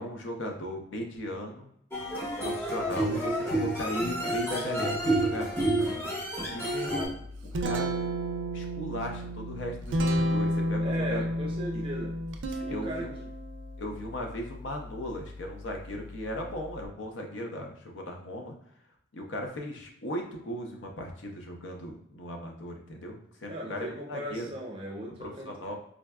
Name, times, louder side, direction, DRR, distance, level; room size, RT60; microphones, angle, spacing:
voice 1, 0.0-1.7 2.4-5.5 6.5-7.2 7.6-7.9 8.5-11.2 11.7-11.8 12.5-13.3 13.8-18.5 19.1-24.5 25.2-25.7, left 1 dB, 85° left, 2 dB, 0.6 m, -37 dB
sound 1, 1.9-7.0, right 1 dB, 15° left, 0.6 m, -29 dB
Guitar, 7.1-16.9, equal, 75° right, 0.4 m, -33 dB
voice 2, 10.8-12.1 12.6-13.1 23.5-25.5, equal, 30° right, -2 dB, 0.6 m, -37 dB
3.7 x 2.2 x 2.2 m, 0.72 s
head